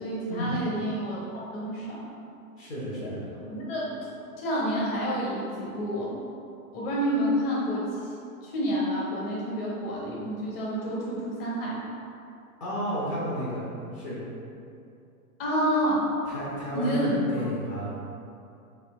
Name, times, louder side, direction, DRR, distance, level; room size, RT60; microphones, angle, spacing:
voice 1, 0.0-2.1 2.9-3.1 3.5-4.0 4.4-6.2 6.7-8.1 8.4-11.8 15.4-16.1 16.7-17.5, equal, 40° left, -5 dB, 1.1 m, -29 dB
voice 2, 2.6-3.3 12.6-13.6 13.9-14.2 16.3-17.9, equal, 25° left, -7 dB, 0.7 m, -32 dB
4.4 x 2.7 x 4.1 m, 2.6 s
hypercardioid pair, 155°, 45 cm